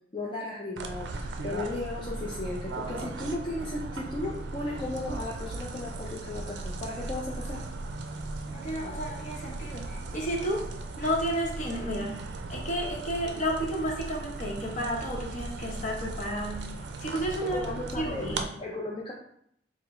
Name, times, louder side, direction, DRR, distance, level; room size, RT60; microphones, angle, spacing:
voice 1, 0.1-7.6 17.5-19.1, left 2 dB, 25° left, -4 dB, 0.5 m, -35 dB
sound 1, 0.8-18.5, right 2 dB, 75° right, 0.4 m, -37 dB
voice 2, 8.5-10.6 11.0-12.1 12.5-16.7 17.0-17.7 18.0-18.5, equal, 40° left, -1 dB, 0.9 m, -32 dB
4.8 x 2.1 x 3.6 m, 0.70 s
head